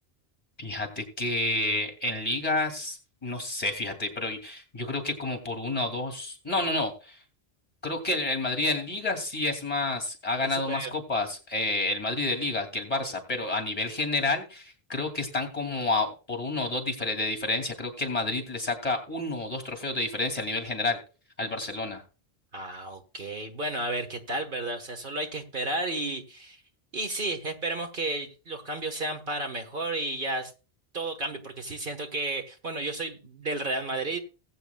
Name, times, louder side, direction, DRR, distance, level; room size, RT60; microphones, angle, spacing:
voice 1, 0.6-7.2 7.8-21.0 21.4-22.0, left 2 dB, 35° left, 6 dB, 2.7 m, -29 dB
voice 2, 10.4-10.9 22.5-26.6 26.9-30.5 30.9-34.2, right 2 dB, 55° right, 5 dB, 1.6 m, -32 dB
20.0 x 8.3 x 2.3 m, 0.33 s
omnidirectional pair, 1.1 m